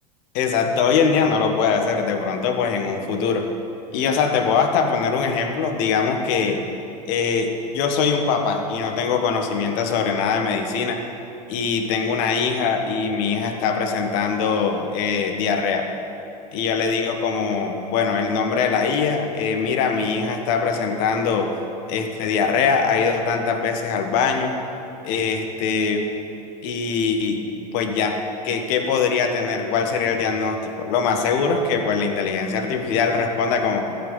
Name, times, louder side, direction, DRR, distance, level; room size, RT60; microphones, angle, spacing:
voice 1, 0.3-3.5 3.9-6.7 7.1-11.0 11.5-15.9 16.5-21.6 21.9-24.6 25.0-26.1 26.6-27.4 27.7-33.9, left 5 dB, 60° left, 4 dB, 1.5 m, -22 dB
14.0 x 5.8 x 9.0 m, 2.7 s
hypercardioid pair, 90°, 21 cm